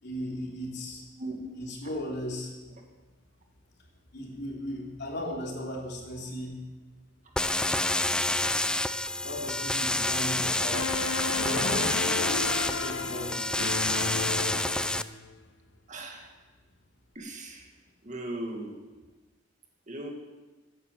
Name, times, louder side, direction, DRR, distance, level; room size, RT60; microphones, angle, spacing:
voice 1, 0.0-1.0 1.6-2.5 4.1-6.6 9.2-11.0 11.4-13.9, left 1 dB, 60° left, -1 dB, 3.0 m, -36 dB
sound 1, 7.4-15.0, left 1 dB, 5° left, 0.3 m, -28 dB
sound 2, 10.7-15.4, left 4 dB, 85° left, 0.9 m, -34 dB
voice 2, 15.9-16.3 17.2-17.7 18.0-18.7 19.9-20.1, right 1 dB, 40° right, 2 dB, 2.0 m, -38 dB
12.0 x 9.8 x 7.5 m, 1.2 s
head